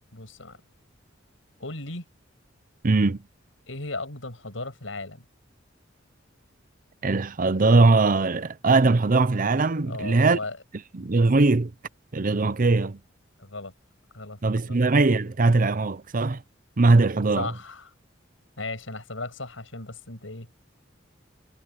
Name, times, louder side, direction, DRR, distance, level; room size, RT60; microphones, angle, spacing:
voice 1, 0.1-0.6 1.6-2.1 3.7-5.2 9.9-10.6 13.4-13.7 14.1-14.4 14.6-14.9 17.4-17.9 18.6-20.5, left 2 dB, 80° left, 6.8 m, -36 dB
voice 2, 2.8-3.2 7.0-10.4 10.9-11.7 12.1-13.0 14.4-16.4 16.8-17.5, right 3 dB, 45° right, 0.7 m, -20 dB
head